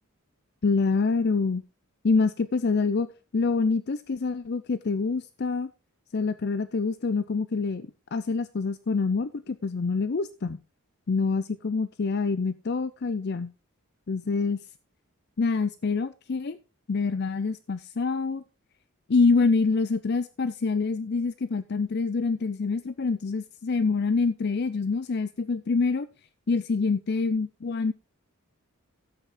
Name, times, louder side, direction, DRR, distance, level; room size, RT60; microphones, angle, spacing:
voice 1, 0.6-1.6 2.0-3.1 3.3-5.7 6.1-10.6 11.1-13.5 14.1-14.6 15.4-16.6 16.9-18.4 19.1-26.1 26.5-27.9, left 4 dB, 50° left, 14 dB, 0.5 m, -26 dB
13.5 x 8.2 x 3.7 m, 0.31 s
head